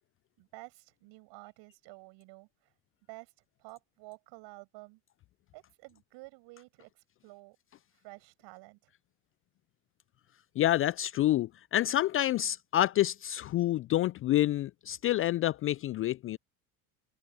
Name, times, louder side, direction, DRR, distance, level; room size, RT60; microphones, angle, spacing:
voice 1, 0.4-2.7 3.1-3.3 3.6-5.0 5.5-7.6 8.0-8.9, right 24 dB, 60° right, 7.6 m, -51 dB
voice 2, 10.6-16.4, left 13 dB, 30° left, 0.4 m, -28 dB
hypercardioid pair, 70°, 46 cm